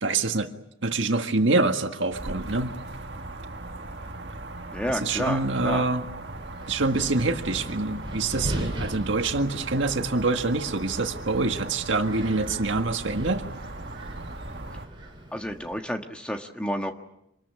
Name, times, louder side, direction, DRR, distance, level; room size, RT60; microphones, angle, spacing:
voice 1, 0.0-0.5 0.8-2.7 5.0-6.0 6.7-13.4, right 3 dB, 75° right, 6 dB, 1.7 m, -25 dB
sound 1, 2.1-14.9, right 2 dB, 60° right, 1.8 m, -38 dB
voice 2, 4.7-5.9 15.3-16.9, equal, 5° left, 4 dB, 1.5 m, -30 dB
Wind, 6.3-15.8, right 1 dB, 25° right, 6.6 m, -39 dB
26.5 x 21.0 x 8.5 m, 0.84 s
head